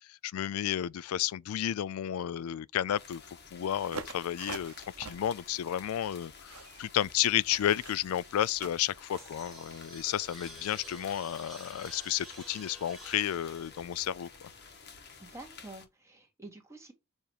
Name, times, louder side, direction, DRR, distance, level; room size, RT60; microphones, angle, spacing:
voice 1, 0.1-3.2 3.5-14.5, left 11 dB, 70° left, 0.3 m, -32 dB
sound 1, 3.0-15.9, left 5 dB, 50° left, 1.3 m, -52 dB
sound 2, 3.8-9.3, right 5 dB, 75° right, 0.8 m, -46 dB
sound 3, 8.8-15.1, right 1 dB, ahead, 1.9 m, -50 dB
voice 2, 15.2-16.9, right 2 dB, 15° right, 1.8 m, -48 dB
7.1 x 3.0 x 4.9 m
head